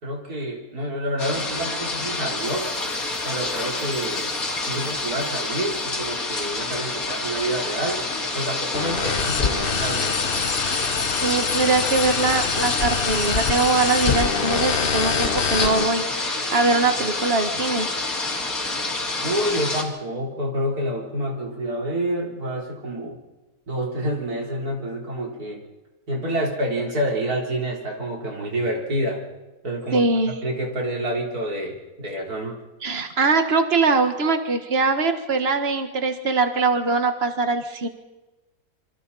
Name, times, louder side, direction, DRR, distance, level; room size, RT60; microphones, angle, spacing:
voice 1, 0.0-2.7 3.2-4.3 4.7-8.0 8.3-10.3 19.2-23.2 23.7-25.6 26.1-29.2 29.6-32.6, right 1 dB, 90° right, 0 dB, 4.4 m, -28 dB
sound 1, 1.2-19.8, left 2 dB, 70° left, 3.2 m, -28 dB
Chime, 2.4-6.6, equal, 10° right, 7.3 m, -48 dB
sound 2, 8.7-15.8, left 6 dB, 45° left, 1.0 m, -25 dB
voice 2, 11.2-17.9 29.9-30.3 32.8-37.9, right 3 dB, 45° right, 7 dB, 1.9 m, -22 dB
26.5 x 25.0 x 4.2 m, 1.1 s
omnidirectional pair, 1.6 m